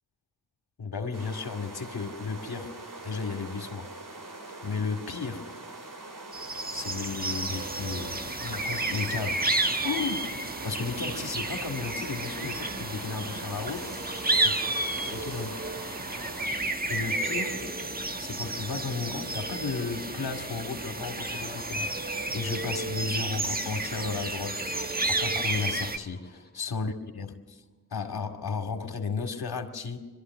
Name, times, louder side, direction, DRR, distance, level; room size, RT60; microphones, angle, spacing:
voice 1, 0.8-2.7 3.0-3.9 4.6-5.4 6.7-9.4 9.8-10.2 10.6-13.9 14.4-14.6 15.1-15.6 16.9-17.6 18.2-27.6 27.9-30.0, left 4 dB, 60° left, 2.4 m, -34 dB
sound 1, 1.1-16.5, right 2 dB, 50° right, 3.3 m, -43 dB
sound 2, 6.3-26.0, right 2 dB, 20° right, 1.4 m, -31 dB
sound 3, 12.7-26.7, left 2 dB, 20° left, 2.5 m, -50 dB
22.5 x 13.5 x 9.5 m
cardioid pair, 45°, 41 cm